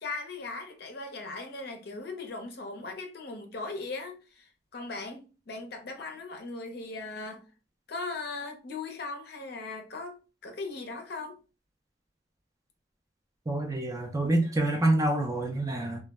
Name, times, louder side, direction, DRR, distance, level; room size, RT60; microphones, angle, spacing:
voice 1, 0.0-7.5 7.9-11.4, left 3 dB, 60° left, 0.6 m, -39 dB
voice 2, 13.5-16.0, right 1 dB, 20° right, 0.4 m, -27 dB
2.2 x 2.0 x 3.4 m
head